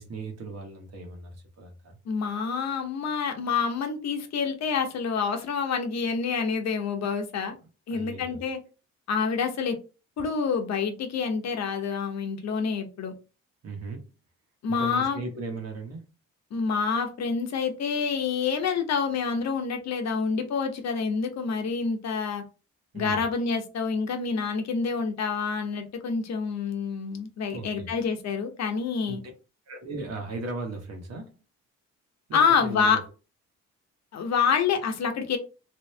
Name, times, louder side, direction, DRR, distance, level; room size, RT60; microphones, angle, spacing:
voice 1, 0.0-2.0 7.9-8.4 13.6-14.1 14.7-16.0 22.9-23.3 27.5-27.9 29.1-29.2 29.7-31.4 32.3-33.0, right 3 dB, 60° right, 1.2 m, -37 dB
voice 2, 2.1-7.5 7.9-8.6 9.1-9.8 10.2-13.1 14.6-15.2 16.5-22.4 22.9-29.2 32.3-33.0 34.1-35.4, left 5 dB, 60° left, 0.9 m, -27 dB
3.0 x 2.7 x 3.2 m
cardioid pair, 90°, 30 cm